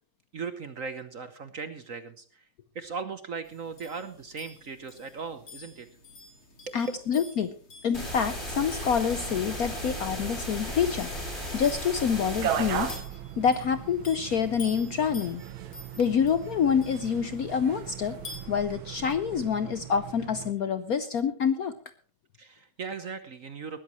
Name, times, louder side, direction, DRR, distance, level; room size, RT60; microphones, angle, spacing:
voice 1, 0.3-2.4 2.7-5.9 6.7-6.8 16.0-16.1 22.4-23.8, right 5 dB, 50° right, 10 dB, 1.1 m, -38 dB
Gold Rings, 3.4-18.4, left 2 dB, 90° left, 3.9 m, -50 dB
voice 2, 6.7-7.5 7.8-11.1 11.5-13.0 13.4-15.4 16.0-18.2 18.5-21.7, left 7 dB, 65° left, 11 dB, 1.0 m, -27 dB
sound 1, 7.9-12.9, equal, 30° left, 6.9 m, -35 dB
sound 2, 12.3-20.5, right 10 dB, 75° right, 1.7 m, -37 dB
19.5 x 14.0 x 3.1 m, 0.41 s
omnidirectional pair, 2.2 m